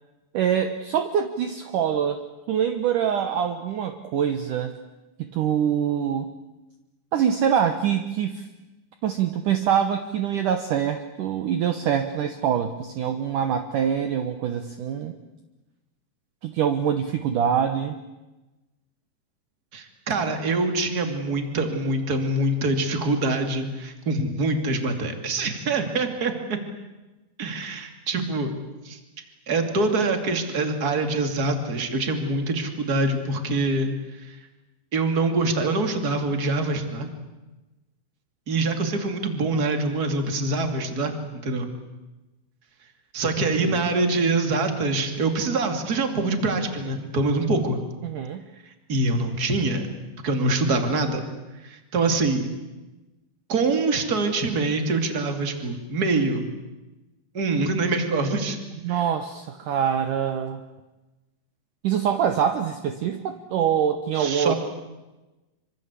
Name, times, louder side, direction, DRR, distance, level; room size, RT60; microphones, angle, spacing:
voice 1, 0.3-2.2 2.5-4.8 5.2-6.3 7.1-8.5 9.0-15.2 16.4-18.0 43.4-43.9 48.0-48.4 58.8-60.6 61.8-64.5, right 8 dB, 75° right, 8 dB, 1.9 m, -24 dB
voice 2, 19.7-26.6 27.4-28.5 28.8-29.0 29.5-33.9 34.2-34.4 34.9-37.1 38.5-41.1 41.4-41.7 43.1-47.8 48.9-49.8 50.2-51.2 51.6-52.5 53.5-56.5 57.3-58.6 58.9-59.0 64.1-64.5, right 2 dB, 25° right, 6 dB, 2.2 m, -24 dB
25.5 x 25.5 x 8.4 m, 1.1 s
omnidirectional pair, 5.4 m